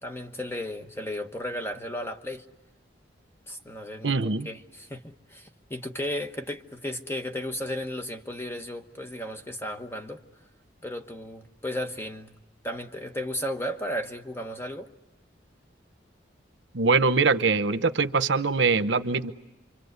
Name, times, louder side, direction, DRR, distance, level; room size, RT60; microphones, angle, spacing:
voice 1, 0.0-2.4 3.5-10.2 10.8-12.3 12.6-14.9, left 1 dB, 15° left, 1.2 m, -34 dB
voice 2, 4.0-4.5 16.7-19.3, right 4 dB, 80° right, 0.9 m, -23 dB
28.0 x 24.5 x 8.1 m
head